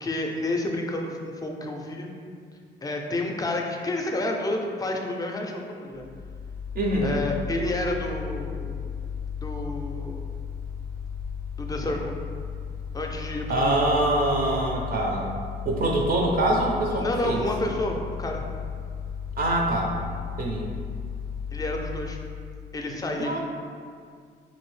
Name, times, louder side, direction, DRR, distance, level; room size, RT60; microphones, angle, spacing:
voice 1, 0.0-2.1 2.8-6.0 7.0-8.8 9.4-10.3 11.6-12.2 12.9-13.9 17.0-18.4 21.5-22.2 22.7-23.4, left 1 dB, 20° left, 1 dB, 0.4 m, -30 dB
Mechanical fan, 5.9-22.8, left 7 dB, 85° right, 0.6 m, -35 dB
voice 2, 6.7-7.2 13.5-15.3 15.7-17.4 19.4-19.9 20.4-20.7 23.2-23.4, right 1 dB, 45° right, -1 dB, 0.4 m, -24 dB
2.7 x 2.6 x 3.1 m, 2.1 s
cardioid pair, 90°, 20 cm